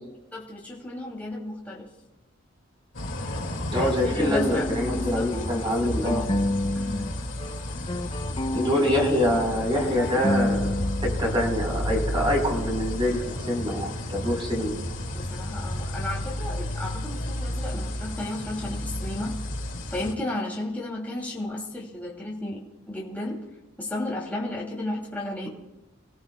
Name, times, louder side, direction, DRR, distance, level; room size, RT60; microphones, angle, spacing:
voice 1, 0.3-1.9 3.8-6.3 6.7-7.1 7.7-7.9 15.1-19.4 19.9-23.4 23.8-25.5, left 2 dB, 10° left, -4 dB, 2.9 m, -33 dB
sound 1, 2.9-20.1, left 1 dB, 65° left, 2.3 m, -32 dB
sound 2, 3.2-7.1 7.4-11.2, left 1 dB, 25° left, 0.5 m, -30 dB
voice 2, 3.7-6.2 8.5-10.7 11.0-14.7, equal, 25° right, 0 dB, 4.5 m, -25 dB
26.5 x 16.5 x 2.3 m, 1.1 s
head